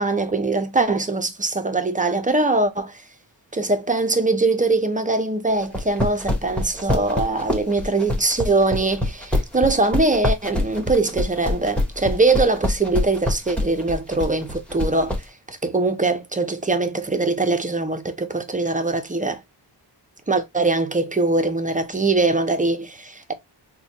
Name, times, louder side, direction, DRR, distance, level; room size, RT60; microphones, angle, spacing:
voice 1, 0.0-3.0 3.5-19.4 20.3-23.3, right 3 dB, 20° right, 0.4 m, -22 dB
sound 1, 5.6-15.2, left 1 dB, 5° left, 0.8 m, -24 dB
4.1 x 2.2 x 2.8 m
wide cardioid pair, 130°, 45 cm